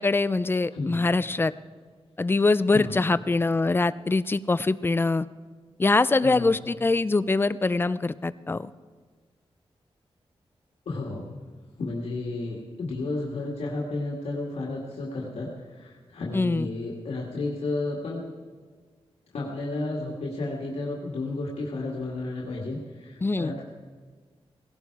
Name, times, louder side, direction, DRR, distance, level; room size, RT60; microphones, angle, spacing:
voice 1, 0.0-1.5 2.2-5.3 5.8-8.7 16.3-16.7 23.2-23.5, left 3 dB, 20° left, 16 dB, 0.4 m, -23 dB
voice 2, 0.7-1.0 2.7-3.0 6.2-6.5 10.9-11.4 11.8-18.3 19.3-23.6, left 2 dB, 90° left, -3 dB, 2.0 m, -32 dB
18.0 x 16.5 x 4.7 m, 1.5 s
wide cardioid pair, 120°, 10 cm